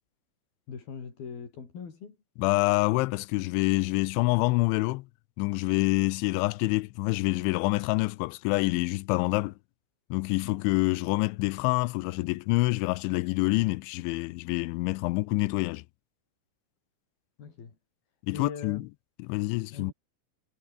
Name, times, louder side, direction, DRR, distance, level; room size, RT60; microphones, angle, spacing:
voice 1, 0.7-2.2 17.4-17.8 18.3-18.9 19.7-19.9, left 6 dB, 55° left, 6.3 m, -41 dB
voice 2, 2.4-5.1 5.4-9.5 10.1-15.8 18.3-18.8 19.2-19.9, left 22 dB, 90° left, 3.1 m, -26 dB
omnidirectional pair, 5.2 m